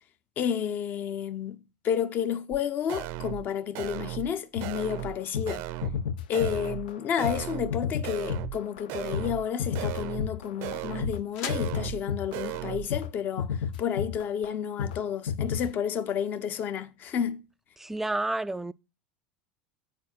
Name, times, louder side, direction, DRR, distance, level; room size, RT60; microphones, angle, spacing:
voice 1, 0.4-5.7 6.3-17.4, left 8 dB, 45° left, 0.9 m, -31 dB
sound 1, 2.5-2.6 2.9-3.5 3.7-4.3 4.6-5.2 5.5-6.0 6.3-6.9 7.2-7.7 8.0-8.6 8.9-9.5 9.7-10.3 10.6-11.2 11.5-12.0 12.3-12.9, right 15 dB, 60° right, 0.6 m, -36 dB
sound 2, 4.6-11.2 11.5-12.6 12.9-13.1 13.4-14.5 14.8-15.0 15.3-15.7, left 7 dB, 85° left, 0.6 m, -32 dB
sound 3, 8.7-14.6, left 7 dB, 60° left, 1.3 m, -47 dB
voice 2, 17.8-18.7, right 2 dB, 5° right, 0.4 m, -30 dB
8.5 x 4.4 x 6.1 m
supercardioid pair, 105°, 5 cm